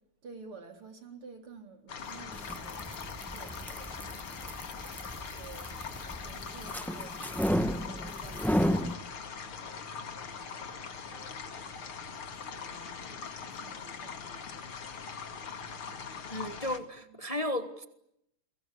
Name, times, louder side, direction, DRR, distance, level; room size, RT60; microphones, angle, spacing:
voice 1, 0.2-4.9 5.1-5.7 6.1-14.9 15.8-16.4 17.1-17.2, right 4 dB, 85° right, 4.8 m, -53 dB
sound 1, 1.9-16.8, left 6 dB, 80° left, 3.1 m, -42 dB
sound 2, 2.2-8.9, equal, ahead, 0.8 m, -33 dB
voice 2, 16.3-17.9, left 1 dB, 20° left, 1.3 m, -34 dB
30.0 x 23.5 x 8.4 m
omnidirectional pair, 2.3 m